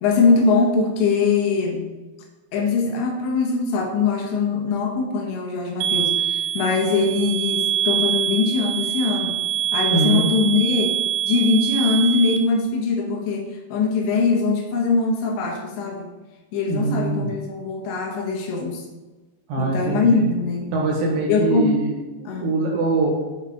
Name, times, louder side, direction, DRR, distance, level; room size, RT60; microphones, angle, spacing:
voice 1, 0.0-1.8 2.5-9.4 9.7-11.0 11.3-16.1 16.5-18.8 19.6-20.7 21.3-21.8 22.3-22.5, left 4 dB, 85° left, 1 dB, 3.6 m, -22 dB
sound 1, 5.8-12.4, right 10 dB, 85° right, 2.0 m, -24 dB
voice 2, 9.9-10.3 16.7-17.3 19.5-20.3 20.7-21.9 22.4-23.1, right 3 dB, 60° right, -2 dB, 3.2 m, -22 dB
8.1 x 6.9 x 3.9 m, 1.2 s
omnidirectional pair, 5.0 m